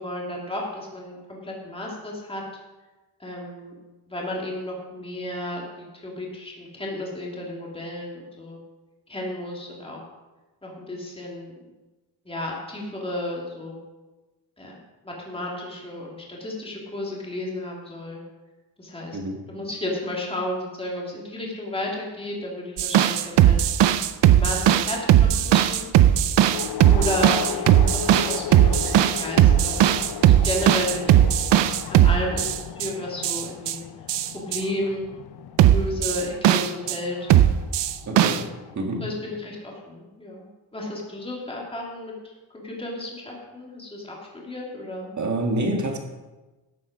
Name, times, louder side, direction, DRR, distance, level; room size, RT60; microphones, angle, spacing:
voice 1, 0.0-2.4 3.2-3.8 4.1-8.6 9.1-10.0 10.6-11.6 12.2-13.8 14.6-14.8 15.0-18.2 18.8-19.2 19.5-23.6 24.3-25.9 26.9-29.7 30.2-31.2 31.9-33.8 34.3-35.1 35.6-37.2 38.2-38.6 39.0-45.1, left 1 dB, 10° left, -3 dB, 2.5 m, -33 dB
sound 1, 22.8-32.9 33.2-33.7 34.1-34.6 35.6-37.0 37.3-38.4, right 11 dB, 70° right, 0.7 m, -18 dB
sound 2, 26.5-38.7, left 9 dB, 60° left, 0.7 m, -36 dB
voice 2, 38.1-38.5 38.7-39.0 45.2-46.0, right 1 dB, 40° right, 3 dB, 1.9 m, -26 dB
13.0 x 8.4 x 5.0 m, 1.2 s
wide cardioid pair, 145°, 45 cm